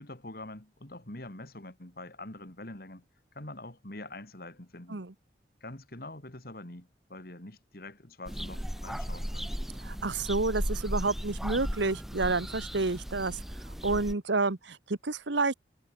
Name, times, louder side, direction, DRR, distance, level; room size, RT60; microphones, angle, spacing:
voice 1, 0.0-3.0 3.3-5.0 5.6-9.6, left 2 dB, 55° left, 2.8 m, -45 dB
sound 1, 8.3-14.1, equal, ahead, 0.5 m, -36 dB
voice 2, 9.8-13.4 13.8-15.5, right 3 dB, 80° right, 1.3 m, -29 dB
head